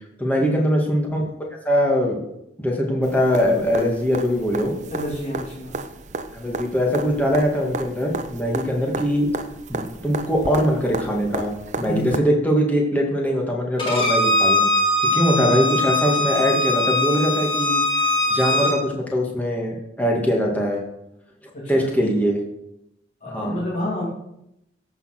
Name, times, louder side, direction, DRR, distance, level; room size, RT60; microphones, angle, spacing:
voice 1, 0.2-1.2 1.7-2.2 2.6-4.7 6.3-9.3 9.7-14.6 15.0-17.8 18.3-20.8 21.7-22.4 23.3-23.6, equal, 10° left, -1 dB, 2.1 m, -22 dB
sound 1, 3.0-12.2 14.2-14.3, right 3 dB, 40° right, 0.7 m, -33 dB
voice 2, 4.9-5.8 11.9-12.2 15.2-15.8 21.5-21.9 23.2-24.0, equal, 45° left, -8 dB, 2.8 m, -29 dB
Bowed string instrument, 13.8-18.8, left 1 dB, 30° left, 3.4 m, -21 dB
14.5 x 5.6 x 6.0 m, 0.82 s
head